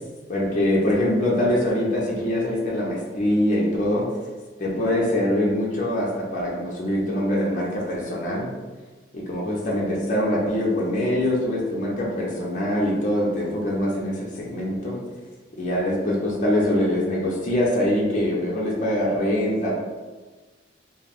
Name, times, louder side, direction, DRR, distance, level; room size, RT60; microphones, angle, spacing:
voice 1, 0.3-4.1 4.6-8.5 9.1-15.0 15.6-19.7, left 1 dB, 40° left, -4 dB, 0.5 m, -23 dB
2.4 x 2.2 x 3.4 m, 1.3 s
head